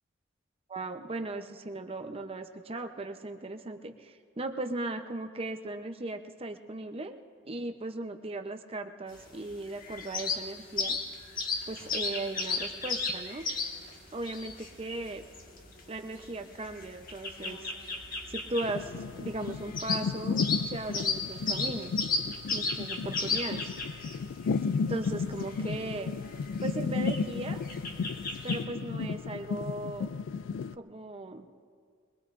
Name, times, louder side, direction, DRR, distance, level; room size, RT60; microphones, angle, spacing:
voice 1, 0.7-11.0 11.7-13.5 14.1-15.2 15.9-17.7 18.3-20.4 20.7-21.9 22.5-23.6 24.9-26.1 26.6-27.6 28.4-30.1 30.8-31.5, right 2 dB, 30° right, 6 dB, 0.7 m, -37 dB
sound 1, 9.1-28.6, left 4 dB, 45° left, 1.6 m, -36 dB
sound 2, 18.6-30.7, left 5 dB, 65° left, 0.3 m, -34 dB
22.5 x 22.0 x 2.6 m, 2.1 s
head